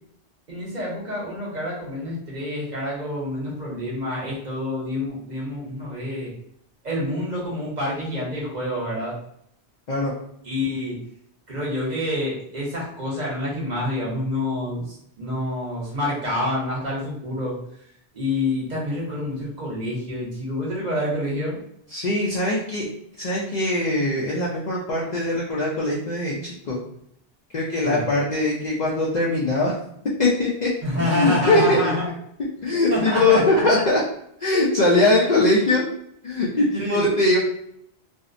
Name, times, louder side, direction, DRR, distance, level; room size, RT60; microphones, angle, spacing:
voice 1, 0.5-6.3 6.8-9.2 10.4-11.0 11.5-17.5 18.1-21.6 27.8-28.0 30.8-32.1 32.6-33.6 36.8-37.1, left 1 dB, 45° right, -6 dB, 0.9 m, -27 dB
voice 2, 21.9-22.9 23.2-26.8 27.5-29.7 30.2-30.7 31.0-31.9 32.6-34.0 34.4-35.8 36.2-37.4, left 2 dB, 55° left, -5 dB, 0.5 m, -21 dB
2.6 x 2.0 x 2.5 m, 0.72 s
omnidirectional pair, 1.1 m